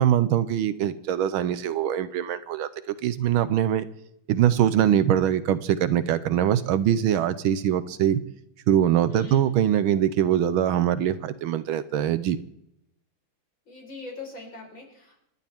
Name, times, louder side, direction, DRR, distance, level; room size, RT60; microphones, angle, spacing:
voice 1, 0.0-3.8 4.3-8.2 8.7-12.4, right 10 dB, 75° right, 1.5 m, -23 dB
voice 2, 9.1-9.5 13.7-15.2, left 3 dB, 60° left, 5.4 m, -41 dB
27.5 x 12.0 x 3.6 m
omnidirectional pair, 2.3 m